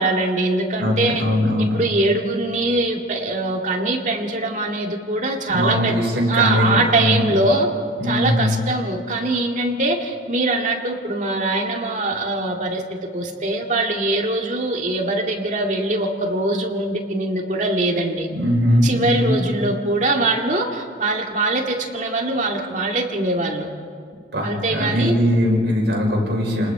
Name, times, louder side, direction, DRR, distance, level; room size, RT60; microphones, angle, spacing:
voice 1, 0.0-1.2 1.6-7.7 8.0-18.3 18.8-23.7 24.4-25.1, right 2 dB, 40° right, 1 dB, 2.2 m, -22 dB
voice 2, 0.8-1.8 5.5-7.3 8.0-8.6 18.3-19.4 24.3-26.7, left 1 dB, 65° right, -1 dB, 5.5 m, -20 dB
30.0 x 20.0 x 5.0 m, 2.2 s
head